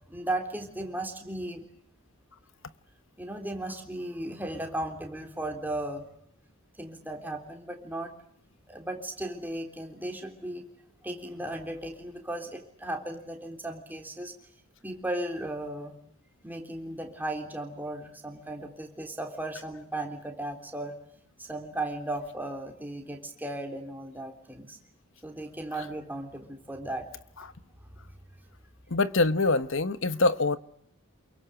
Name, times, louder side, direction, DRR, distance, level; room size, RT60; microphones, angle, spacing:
voice 1, 0.1-1.7 3.2-6.1 6.8-8.1 8.7-10.6 11.0-14.3 14.8-15.9 16.4-20.9 21.4-24.8 25.2-27.1, right 1 dB, 10° right, 3.6 m, -36 dB
voice 2, 28.9-30.6, left 3 dB, 60° left, 1.1 m, -24 dB
28.5 x 23.0 x 8.1 m
head